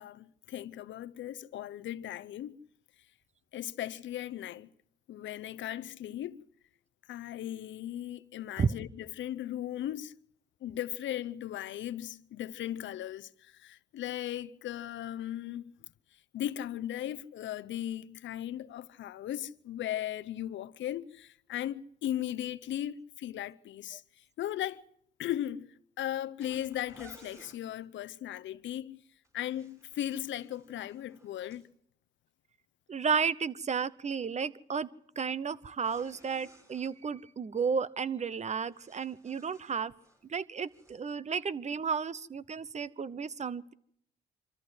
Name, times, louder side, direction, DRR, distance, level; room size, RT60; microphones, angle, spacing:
voice 1, 0.0-2.6 3.5-4.7 5.1-6.4 7.1-10.1 10.6-15.7 16.3-24.0 24.4-24.8 25.2-29.0 29.3-31.7, left 12 dB, 70° left, 0.7 m, -37 dB
sound 1, 26.4-27.6 29.2-31.7 35.7-36.9 38.4-40.3 40.6-41.0, right 1 dB, 15° right, 5.6 m, -58 dB
voice 2, 32.9-34.9 35.2-39.9 40.3-43.7, right 6 dB, 35° right, 0.9 m, -33 dB
25.0 x 14.0 x 7.9 m
cardioid pair, 90°, 20 cm